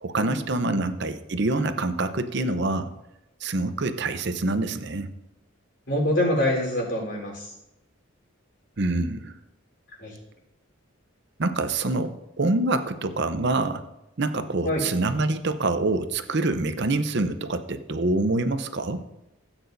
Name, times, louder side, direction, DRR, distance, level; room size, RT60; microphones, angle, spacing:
voice 1, 0.0-2.9 3.4-5.1 8.8-9.3 11.4-13.8 14.2-19.0, right 2 dB, 55° right, 10 dB, 0.7 m, -26 dB
voice 2, 5.9-7.5 10.0-10.2 14.6-14.8, left 1 dB, 55° left, -2 dB, 3.8 m, -25 dB
16.5 x 8.9 x 2.7 m, 0.91 s
head